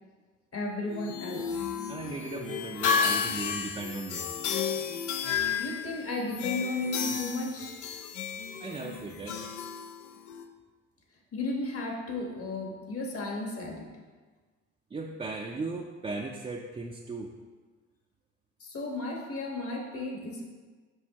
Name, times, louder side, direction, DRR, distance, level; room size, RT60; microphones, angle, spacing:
voice 1, 0.5-1.7 5.6-7.8 11.3-13.9 18.6-20.4, left 2 dB, 50° left, 1 dB, 1.3 m, -34 dB
sound 1, 0.9-10.4, left 6 dB, 80° left, 0.5 m, -32 dB
voice 2, 1.9-4.3 8.6-9.4 14.9-17.3, right 3 dB, 20° right, -1 dB, 0.4 m, -37 dB
6.3 x 5.2 x 2.9 m, 1.4 s
cardioid pair, 90°, 30 cm